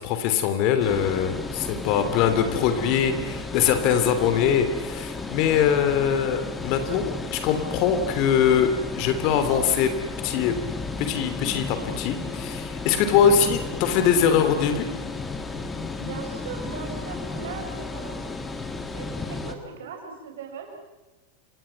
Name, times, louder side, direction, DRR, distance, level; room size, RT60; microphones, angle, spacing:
voice 1, 0.0-9.9 10.2-10.6 11.0-14.9, left 8 dB, 45° left, 8 dB, 3.3 m, -22 dB
sound 1, 0.8-19.5, left 3 dB, 10° left, 2.5 m, -34 dB
voice 2, 15.8-18.2 18.9-20.8, right 5 dB, 60° right, 4 dB, 5.8 m, -39 dB
29.5 x 27.5 x 6.0 m, 1.1 s
figure-of-eight pair, 90°, 0 cm